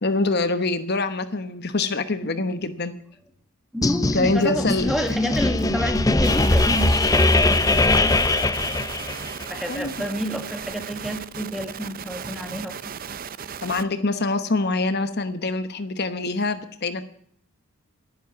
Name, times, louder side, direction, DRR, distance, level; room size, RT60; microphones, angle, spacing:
voice 1, 0.0-2.9 4.1-4.9 9.7-9.9 13.6-17.0, left 3 dB, 45° left, 11 dB, 1.0 m, -25 dB
voice 2, 3.7-8.1 9.5-12.8, equal, ahead, 7 dB, 1.3 m, -29 dB
sound 1, 3.8-9.5, left 2 dB, 15° left, 0.6 m, -21 dB
sound 2, 4.4-4.5 5.1-5.7 5.9-6.0 6.2-6.8 7.1-7.7 8.0-8.1 8.5-8.7 9.2-9.3 9.8-10.0 10.4-10.5 10.9-11.6 12.2-12.6, equal, 20° right, 3.4 m, -41 dB
sound 3, 6.2-13.8, right 7 dB, 40° right, 0.5 m, -36 dB
11.5 x 11.0 x 8.4 m, 0.65 s
head